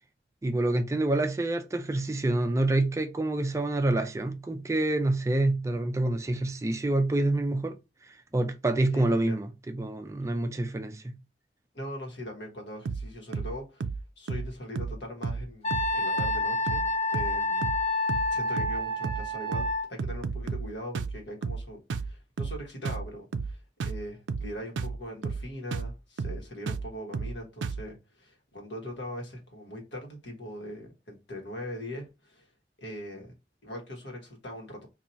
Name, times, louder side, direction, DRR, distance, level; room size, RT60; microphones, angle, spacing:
voice 1, 0.4-7.8 8.0-11.2, right 2 dB, 15° right, 0.3 m, -27 dB
voice 2, 8.9-9.4 11.7-13.9 14.2-17.7 18.3-32.5 32.8-33.3 33.6-34.9, equal, 85° left, 1.4 m, -41 dB
sound 1, 12.9-13.1 13.3-13.5 13.8-14.0 14.3-14.5 14.8-15.0 15.2-15.5 15.7-15.9 16.2-16.4 16.7-16.9 17.1-17.4 17.6-17.8 18.1-18.3 18.6-18.8 19.0-19.3 19.5-19.7 20.0-20.7 20.9-21.2 21.4-21.6 21.9-22.1 22.4-22.6 22.9-23.1 23.3-23.5 23.8-24.0 24.3-24.5 24.8-25.0 25.2-25.5 25.7-25.9 26.2-26.4 26.7-26.9 27.1-27.4 27.6-27.8, right 4 dB, 90° right, 0.4 m, -32 dB
Wind instrument woodwind instrument, 15.6-19.9, left 2 dB, 35° left, 0.6 m, -28 dB
2.7 x 2.6 x 4.3 m
head